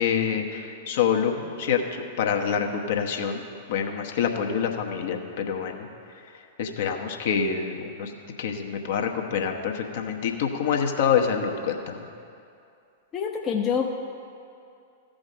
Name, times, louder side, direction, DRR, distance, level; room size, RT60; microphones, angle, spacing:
voice 1, 0.0-3.4 3.7-5.9 6.6-8.1 8.4-12.1, left 7 dB, 55° left, 3 dB, 0.9 m, -26 dB
voice 2, 13.1-14.0, left 6 dB, 25° left, 1 dB, 0.7 m, -26 dB
14.5 x 5.1 x 6.2 m, 2.5 s
figure-of-eight pair, 100°, 0 cm